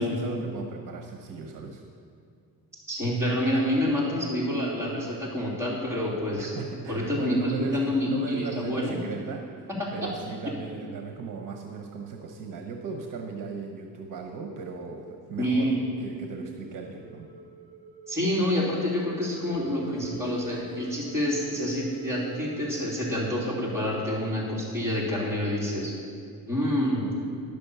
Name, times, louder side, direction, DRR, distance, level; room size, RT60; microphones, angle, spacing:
voice 1, 0.0-1.8 6.4-17.3, right 4 dB, 60° right, 3 dB, 1.0 m, -37 dB
voice 2, 2.9-6.5 6.9-9.0 9.8-10.1 15.4-15.8 18.1-25.9 26.5-27.1, equal, 5° right, -7 dB, 3.1 m, -27 dB
sound 1, 16.1-25.3, right 4 dB, 35° right, 1.9 m, -46 dB
11.0 x 6.9 x 6.8 m, 2.3 s
cardioid pair, 140°, 36 cm